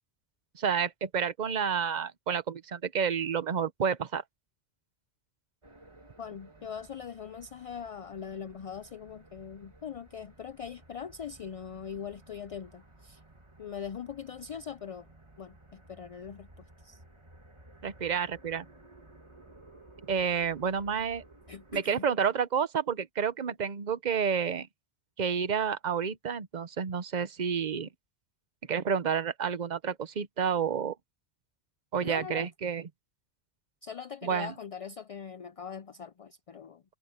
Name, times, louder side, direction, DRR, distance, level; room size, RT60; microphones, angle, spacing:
voice 1, 0.5-4.2 17.8-18.6 20.1-21.2 21.7-24.7 25.2-27.9 28.7-30.9 31.9-32.9 34.2-34.5, right 7 dB, 45° right, 0.9 m, -30 dB
sound 1, 5.6-21.8, right 2 dB, 25° right, 2.0 m, -56 dB
voice 2, 6.2-13.2 13.6-15.1 15.4-17.0 21.5-22.1 32.0-32.5 33.8-36.8, left 7 dB, 50° left, 0.4 m, -41 dB
omnidirectional pair, 1.1 m